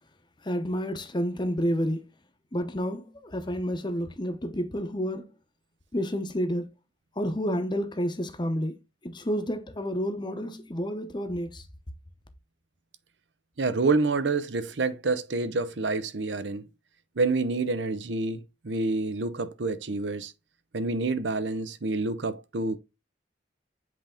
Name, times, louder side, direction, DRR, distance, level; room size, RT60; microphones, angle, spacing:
voice 1, 0.4-2.0 2.5-5.3 5.9-6.7 7.2-8.8 9.0-11.6, equal, 25° left, 0.8 m, -30 dB
voice 2, 13.6-16.7 17.2-20.3 20.7-22.8, right 3 dB, 70° right, 0.7 m, -28 dB
7.8 x 3.5 x 3.7 m
head